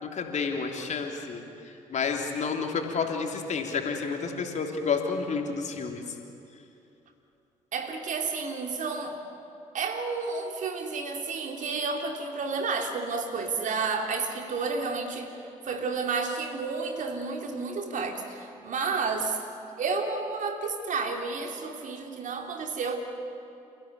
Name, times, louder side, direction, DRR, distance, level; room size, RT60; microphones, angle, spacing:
voice 1, 0.0-1.4 1.9-6.0, left 5 dB, 45° left, 3 dB, 3.2 m, -30 dB
voice 2, 7.7-9.2 9.7-15.3 15.6-19.4 19.8-23.0, right 4 dB, 50° right, 4 dB, 3.0 m, -31 dB
29.5 x 15.5 x 9.5 m, 2.7 s
figure-of-eight pair, 45°, 17 cm